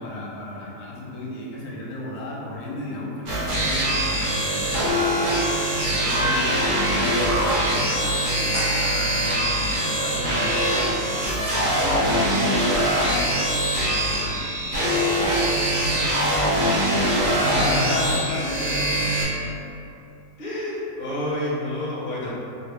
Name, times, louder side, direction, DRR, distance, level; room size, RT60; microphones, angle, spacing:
voice 1, 0.0-4.8 5.4-13.5 14.0-19.4, left 1 dB, 70° left, -5 dB, 1.1 m, -35 dB
sound 1, 3.3-19.2, right 1 dB, 60° right, 0.5 m, -23 dB
sound 2, 8.5-15.3 15.7-15.8, right 1 dB, 20° right, 1.0 m, -38 dB
voice 2, 17.4-18.2 20.4-22.3, left 1 dB, 45° left, -8 dB, 0.9 m, -27 dB
2.9 x 2.4 x 3.3 m, 2.7 s
omnidirectional pair, 1.7 m